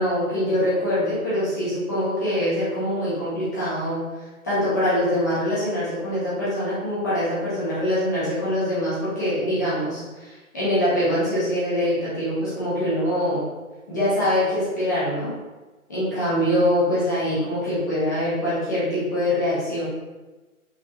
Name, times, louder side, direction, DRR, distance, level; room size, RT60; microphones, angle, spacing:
voice 1, 0.0-4.0 4.4-13.4 13.9-15.3 15.9-19.9, equal, 15° left, -10 dB, 0.7 m, -24 dB
5.0 x 2.8 x 2.6 m, 1.2 s
figure-of-eight pair, 155°, 43 cm